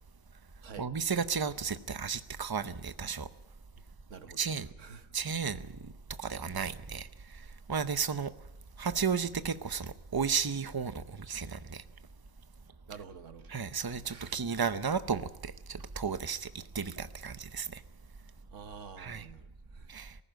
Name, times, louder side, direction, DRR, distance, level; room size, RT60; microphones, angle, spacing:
voice 1, 0.8-3.3 4.4-4.7 5.1-5.9 6.2-8.3 8.8-11.8 13.5-17.8 19.0-19.3 19.9-20.2, right 6 dB, 25° right, 0.5 m, -34 dB
voice 2, 4.1-4.4 4.8-5.1 12.9-13.6 14.1-14.4 18.5-19.9, right 6 dB, 65° right, 1.3 m, -48 dB
19.0 x 15.0 x 9.1 m
omnidirectional pair, 1.4 m